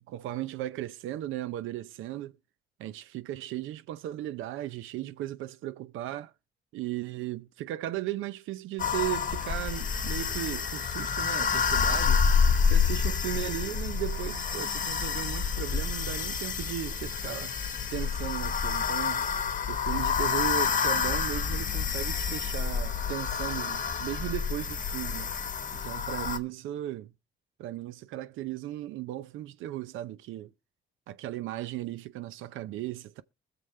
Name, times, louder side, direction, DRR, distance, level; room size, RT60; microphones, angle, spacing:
voice 1, 0.0-2.4 2.8-6.3 6.7-12.2 12.6-17.5 17.9-19.3 19.7-25.3 25.7-27.1 27.6-30.5 31.1-33.2, right 14 dB, 90° right, 0.6 m, -36 dB
sound 1, 8.8-26.4, left 6 dB, 40° left, 1.2 m, -28 dB
21.0 x 7.0 x 3.2 m
cardioid pair, 90°, 20 cm